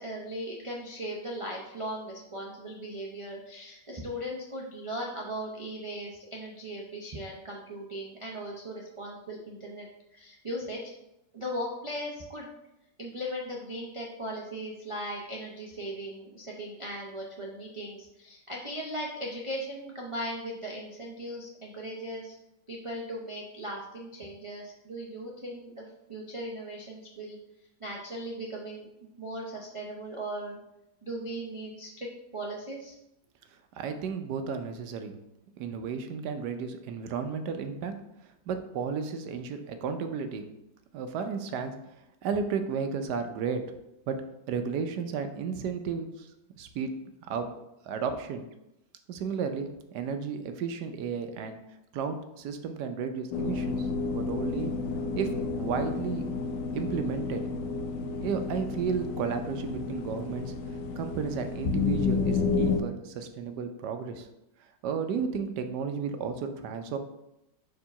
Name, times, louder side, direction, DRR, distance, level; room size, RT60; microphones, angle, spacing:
voice 1, 0.0-10.8 11.3-12.5 13.0-22.4 22.7-27.4 27.8-28.9 29.2-30.6 31.0-32.9, equal, 50° right, -3 dB, 0.3 m, -38 dB
voice 2, 33.8-35.2 35.6-38.0 38.5-40.5 40.9-41.8 42.2-43.6 44.1-44.2 44.5-46.3 46.6-46.9 47.3-47.5 47.8-48.5 49.1-51.6 51.9-54.8 55.2-56.3 56.7-57.5 58.2-64.3 64.8-67.0, right 6 dB, 70° right, 7 dB, 1.2 m, -33 dB
sound 1, 53.3-62.8, left 4 dB, 80° left, 1.3 m, -31 dB
4.8 x 3.7 x 5.5 m, 0.87 s
omnidirectional pair, 1.9 m